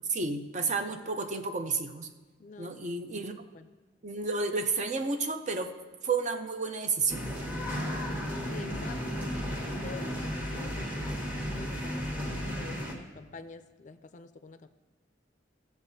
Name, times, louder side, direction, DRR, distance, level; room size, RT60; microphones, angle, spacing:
voice 1, 0.0-2.1 2.6-3.3 4.0-5.8 6.0-7.3, right 4 dB, 40° right, 7 dB, 0.6 m, -31 dB
voice 2, 2.4-3.0 3.5-3.7 7.8-10.9 11.4-14.7, left 3 dB, 40° left, 10 dB, 0.4 m, -47 dB
sound 1, 7.1-12.9, equal, 10° right, 1.3 m, -34 dB
16.0 x 7.2 x 2.7 m, 1.2 s
head